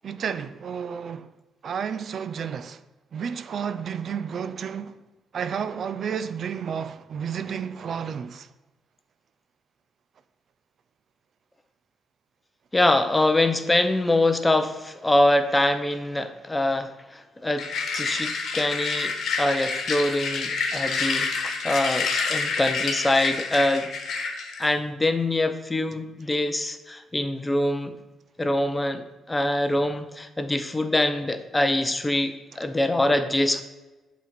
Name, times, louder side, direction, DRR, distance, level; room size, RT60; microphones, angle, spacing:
voice 1, 0.0-1.3 1.6-2.8 3.1-5.0 5.3-8.5, right 7 dB, 55° right, 0.4 m, -31 dB
voice 2, 12.7-17.7 17.9-23.9 24.6-27.9 28.4-33.6, left 1 dB, 15° left, 0.7 m, -24 dB
sound 1, 17.6-24.7, left 4 dB, 65° left, 1.2 m, -28 dB
7.2 x 4.1 x 5.9 m
cardioid pair, 90°, 0 cm